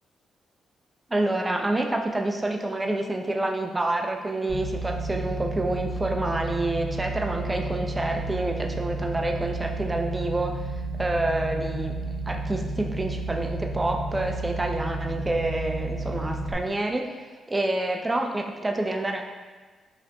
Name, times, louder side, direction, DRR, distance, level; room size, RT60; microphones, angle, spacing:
voice 1, 1.1-10.6 11.0-12.0 12.3-19.2, right 2 dB, 20° right, 3 dB, 0.4 m, -28 dB
sound 1, 4.5-16.5, right 2 dB, 70° right, 1.2 m, -32 dB
4.8 x 2.7 x 2.2 m, 1.4 s
cardioid pair, 70°, 0 cm